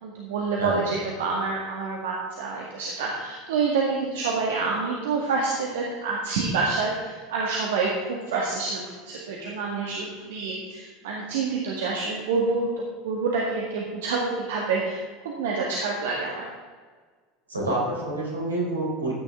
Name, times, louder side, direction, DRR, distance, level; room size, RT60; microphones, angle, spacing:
voice 1, 0.0-12.7 13.0-16.5, right 4 dB, 65° right, -2 dB, 1.8 m, -27 dB
voice 2, 0.6-1.0 17.5-19.1, right 1 dB, 85° right, -3 dB, 4.0 m, -27 dB
14.5 x 9.7 x 3.6 m, 1.5 s
figure-of-eight pair, 75°, 0 cm